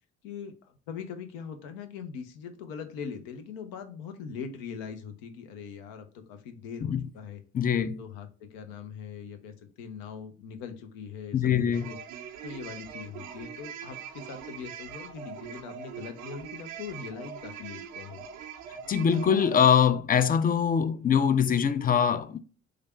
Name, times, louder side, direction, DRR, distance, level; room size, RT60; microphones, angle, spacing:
voice 1, 0.2-7.4 7.8-12.0 12.4-18.2, left 6 dB, 75° left, 0.7 m, -41 dB
voice 2, 7.5-8.0 11.3-11.9 18.9-22.4, left 7 dB, 25° left, 0.4 m, -23 dB
sound 1, 11.7-19.9, right 8 dB, 75° right, 0.5 m, -42 dB
3.2 x 2.4 x 4.3 m
hypercardioid pair, 45°, 37 cm